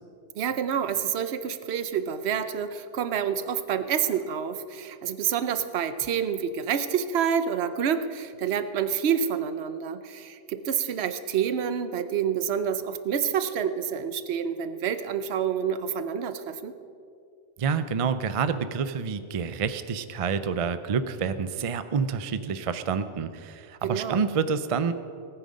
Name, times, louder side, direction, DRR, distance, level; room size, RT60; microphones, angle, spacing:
voice 1, 0.4-16.7 23.8-24.2, right 8 dB, 65° right, 11 dB, 0.9 m, -28 dB
voice 2, 17.6-24.9, right 6 dB, 50° right, 12 dB, 0.4 m, -28 dB
19.0 x 9.2 x 5.1 m, 2.5 s
omnidirectional pair, 1.2 m